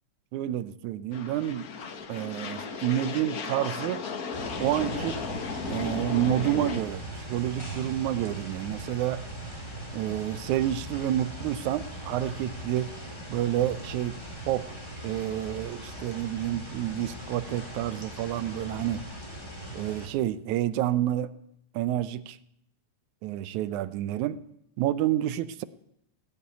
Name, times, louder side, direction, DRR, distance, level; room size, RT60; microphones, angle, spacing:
voice 1, 0.3-1.7 2.1-4.0 4.6-5.2 5.7-9.2 9.9-12.9 13.3-14.2 14.5-14.7 15.0-19.0 19.7-21.3 21.7-22.4 23.2-24.4 24.8-25.6, right 13 dB, 85° right, 16 dB, 2.1 m, -29 dB
sound 1, 1.1-6.8, left 5 dB, 55° left, 1.0 m, -35 dB
sound 2, 4.3-20.1, right 1 dB, 10° left, 3.5 m, -39 dB
17.0 x 8.6 x 9.5 m, 0.78 s
omnidirectional pair, 3.3 m